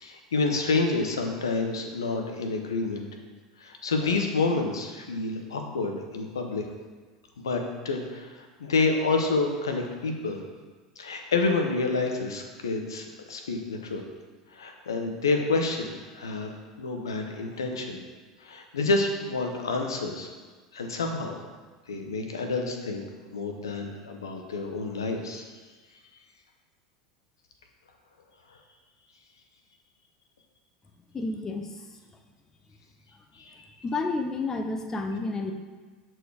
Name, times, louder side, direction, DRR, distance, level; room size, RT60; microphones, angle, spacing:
voice 1, 0.0-3.1 3.6-6.6 7.4-8.3 8.6-10.4 11.0-14.0 14.5-18.0 18.4-20.3 20.7-21.4 21.9-23.0 23.3-25.4 33.4-33.5, left 3 dB, 85° left, 3 dB, 0.9 m, -28 dB
voice 2, 31.1-32.0 33.8-35.5, left 3 dB, 25° left, 5 dB, 0.8 m, -30 dB
6.6 x 4.5 x 4.8 m, 1.4 s
hypercardioid pair, 80°, 2 cm